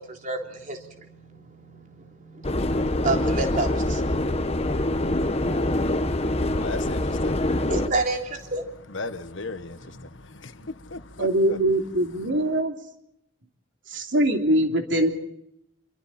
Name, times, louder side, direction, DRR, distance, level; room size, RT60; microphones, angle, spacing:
voice 1, 0.0-6.7 7.7-8.7, right 3 dB, 40° right, 3.4 m, -32 dB
Subway metro underground, 2.4-7.9, left 1 dB, 30° left, 1.2 m, -25 dB
voice 2, 6.4-7.7 8.9-11.6, left 3 dB, 75° left, 1.4 m, -37 dB
voice 3, 11.2-12.8 13.9-15.1, right 1 dB, 70° right, 3.1 m, -22 dB
26.0 x 23.5 x 4.3 m
head